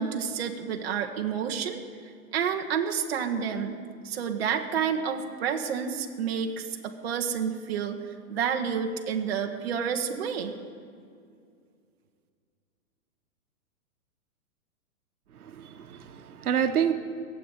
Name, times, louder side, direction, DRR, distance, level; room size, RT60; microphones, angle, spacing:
voice 1, 0.0-1.8 2.3-3.7 4.0-8.0 8.3-10.5, right 7 dB, 45° right, 3 dB, 1.2 m, -29 dB
voice 2, 15.3-16.9, right 8 dB, 85° right, 9 dB, 1.3 m, -28 dB
16.0 x 7.9 x 9.6 m, 2.3 s
hypercardioid pair, 170°, 43 cm